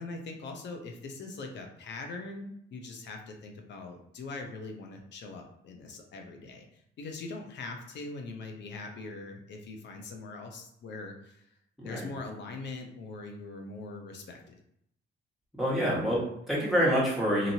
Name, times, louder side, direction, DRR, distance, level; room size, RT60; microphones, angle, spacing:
voice 1, 0.0-11.5 11.8-14.5, left 3 dB, 65° left, 3 dB, 0.7 m, -42 dB
voice 2, 15.6-17.5, equal, ahead, -7 dB, 1.4 m, -27 dB
2.9 x 2.6 x 2.7 m, 0.76 s
cardioid pair, 90°, 20 cm